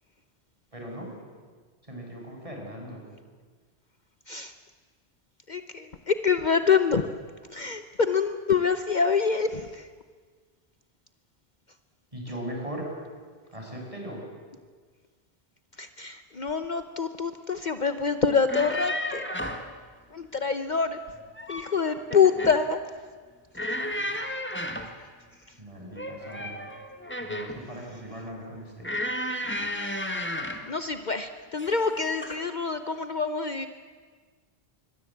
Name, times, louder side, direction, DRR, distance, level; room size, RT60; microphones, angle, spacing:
voice 1, 0.7-1.1 1.9-3.0 12.1-12.9 13.5-14.2 25.6-26.6 27.2-28.9, right 1 dB, 30° right, 0 dB, 6.6 m, -39 dB
voice 2, 5.5-7.0 7.5-9.9 15.8-19.2 20.1-21.0 21.5-22.8 30.7-33.7, left 5 dB, 45° left, 9 dB, 1.0 m, -26 dB
sound 1, 18.3-19.7 21.1-21.8 22.1-22.6 23.5-25.0 25.9-27.6 28.8-30.7 31.6-31.9 32.2-32.4, left 1 dB, 10° left, 1.8 m, -33 dB
25.5 x 22.0 x 8.5 m, 1.5 s
omnidirectional pair, 1.1 m